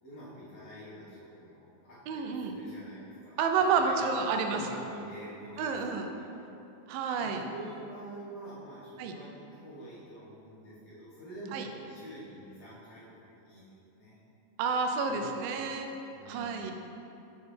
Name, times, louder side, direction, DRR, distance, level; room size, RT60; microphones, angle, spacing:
voice 1, 0.0-3.4 3.8-6.5 7.1-13.6 14.0-14.2 15.0-15.6 16.1-16.6, right 1 dB, 55° left, -10 dB, 2.2 m, -46 dB
voice 2, 2.1-2.6 3.4-4.8 5.6-6.1 6.9-7.4 9.0-9.1 11.5-11.7 14.6-15.9 16.3-16.7, right 5 dB, 85° right, 4 dB, 2.3 m, -30 dB
7.3 x 6.1 x 3.2 m, 2.9 s
omnidirectional pair, 4.1 m